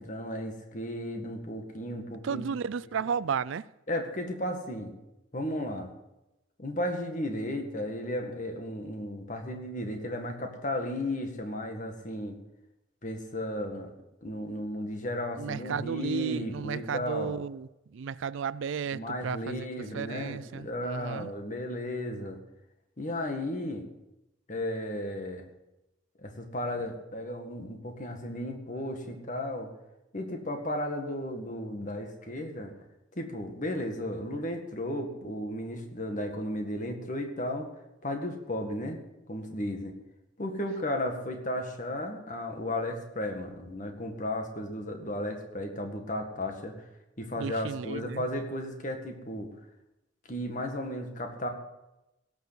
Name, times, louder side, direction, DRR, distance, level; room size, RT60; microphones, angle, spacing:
voice 1, 0.0-2.5 3.9-4.9 5.3-5.9 6.6-12.4 13.0-13.9 14.2-17.4 18.9-22.4 23.0-23.9 24.5-25.5 26.2-29.7 30.1-32.7 33.2-37.7 38.0-39.0 39.3-40.0 40.4-46.8 47.2-49.5 50.3-51.5, left 1 dB, 40° left, 1.9 m, -34 dB
voice 2, 2.2-3.7 15.4-19.7 19.9-21.3 47.4-48.3, right 6 dB, 70° right, 0.4 m, -33 dB
17.0 x 6.8 x 8.1 m
head